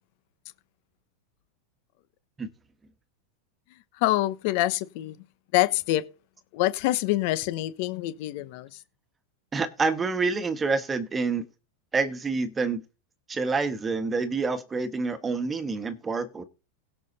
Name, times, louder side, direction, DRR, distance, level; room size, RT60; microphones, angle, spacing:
voice 1, 4.0-5.2 5.5-6.0 6.5-8.8, left 16 dB, 60° left, 1.0 m, -26 dB
voice 2, 9.5-11.4 11.9-12.8 13.3-16.4, right 4 dB, 15° right, 1.5 m, -27 dB
17.0 x 5.8 x 4.2 m
supercardioid pair, 125°, 0 cm